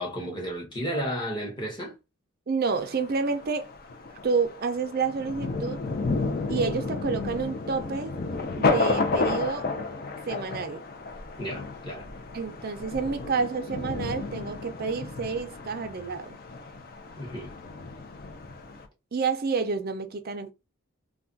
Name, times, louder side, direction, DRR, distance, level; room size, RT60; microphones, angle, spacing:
voice 1, 0.0-1.9 11.4-12.1 17.2-17.5, equal, 20° left, 0.9 m, -33 dB
voice 2, 2.5-3.7 4.2-5.8 6.5-8.2 8.6-9.7 10.3-10.8 12.3-16.4 19.1-20.5, right 5 dB, 45° right, 0.4 m, -29 dB
Thunder, 2.7-18.9, left 3 dB, 45° left, 0.5 m, -32 dB
2.4 x 2.2 x 3.8 m
head